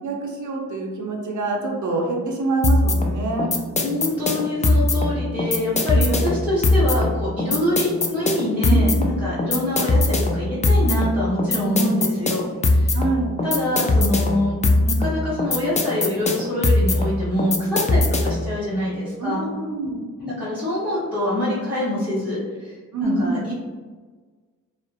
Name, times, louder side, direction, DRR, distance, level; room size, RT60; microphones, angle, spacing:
voice 1, 0.0-3.5 5.9-6.3 8.6-9.1 12.9-13.4 19.2-20.0 22.9-23.5, right 3 dB, 55° right, 0 dB, 0.7 m, -26 dB
sound 1, 2.6-18.5, left 2 dB, 20° left, 0.3 m, -21 dB
voice 2, 3.8-13.0 13.4-14.5 14.9-19.5 20.2-22.7 23.0-23.5, left 1 dB, 5° right, -11 dB, 0.9 m, -25 dB
2.4 x 2.0 x 2.6 m, 1.4 s
supercardioid pair, 45°, 36 cm